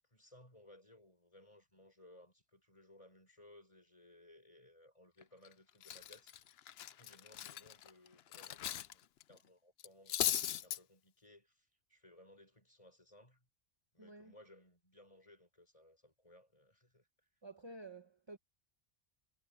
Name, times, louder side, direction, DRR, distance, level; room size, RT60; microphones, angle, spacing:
voice 1, 0.1-13.5 13.9-17.1, left 1 dB, 25° left, 6.0 m, -62 dB
Cutlery silverware, 5.2-5.5 5.8-8.9 9.2-9.4 9.8-10.8, left 11 dB, 65° left, 0.8 m, -38 dB
voice 2, 14.0-14.3 17.4-18.4, right 2 dB, 25° right, 1.1 m, -51 dB
omnidirectional pair, 1.2 m